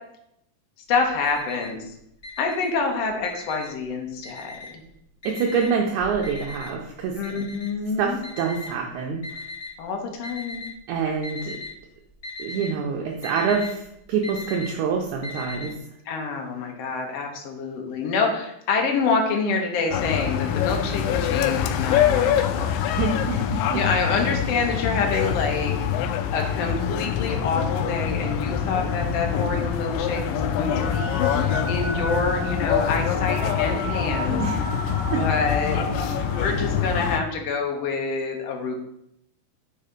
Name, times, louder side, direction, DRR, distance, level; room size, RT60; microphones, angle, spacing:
voice 1, 0.9-1.9 2.4-4.7 7.2-8.2 9.8-10.6 16.1-22.7 23.7-34.4 35.2-36.0 36.3-38.8, left 4 dB, 65° left, 2 dB, 1.7 m, -27 dB
Alarm, 0.9-1.9 2.2-3.8 4.2-4.9 5.2-9.7 10.2-10.8 11.1-11.8 12.0-15.7, left 3 dB, 45° left, 1.0 m, -38 dB
voice 2, 5.2-7.2 8.0-9.5 10.9-11.6 12.4-15.8 22.8-23.8 34.3-35.2 36.4-36.5, right 6 dB, 75° right, 1 dB, 1.8 m, -26 dB
sound 1, 19.9-37.2, left 9 dB, 80° left, 2.1 m, -25 dB
sound 2, 27.3-36.9, equal, 20° right, 2.6 m, -33 dB
5.4 x 4.9 x 5.0 m, 0.78 s
omnidirectional pair, 4.0 m